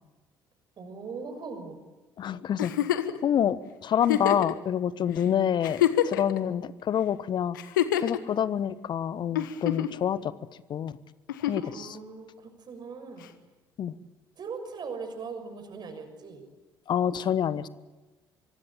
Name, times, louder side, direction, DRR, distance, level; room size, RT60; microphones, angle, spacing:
voice 1, 0.8-1.8 11.5-13.3 14.4-16.4, right 5 dB, 40° right, 7 dB, 6.6 m, -40 dB
voice 2, 2.2-2.7 3.2-7.6 8.0-10.3 10.7-10.9 11.4-12.0 13.8-13.9 16.9-17.7, left 9 dB, 45° left, 17 dB, 1.2 m, -27 dB
Giggle, 2.6-3.2 4.0-4.5 5.2-5.3 5.6-6.4 7.5-8.2 9.4-10.0 11.3-11.7 13.2-13.3, left 11 dB, 75° left, 1.4 m, -26 dB
24.5 x 24.0 x 9.0 m, 1.2 s
figure-of-eight pair, 55°, 11 cm